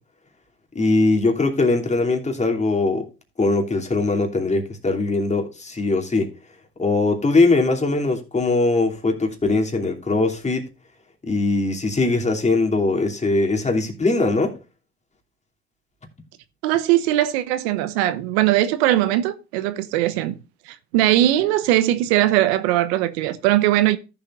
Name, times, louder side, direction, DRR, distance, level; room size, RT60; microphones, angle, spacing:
voice 1, 0.7-3.1 3.4-6.3 6.8-10.7 11.2-14.6, left 3 dB, 20° left, 2.9 m, -21 dB
voice 2, 16.6-20.4 20.7-24.0, right 14 dB, 80° right, 1.0 m, -20 dB
14.5 x 7.0 x 2.5 m
supercardioid pair, 80°, 32 cm